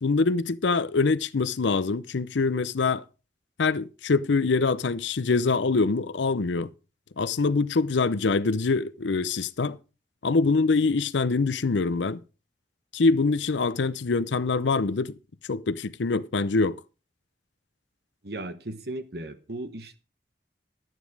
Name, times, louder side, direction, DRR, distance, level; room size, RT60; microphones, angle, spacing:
voice 1, 0.0-3.0 3.6-6.7 7.2-9.8 10.2-12.2 12.9-15.1 15.5-16.8, left 4 dB, 80° left, 0.6 m, -24 dB
voice 2, 18.2-20.0, right 1 dB, 60° right, 1.2 m, -36 dB
11.5 x 9.2 x 4.7 m
head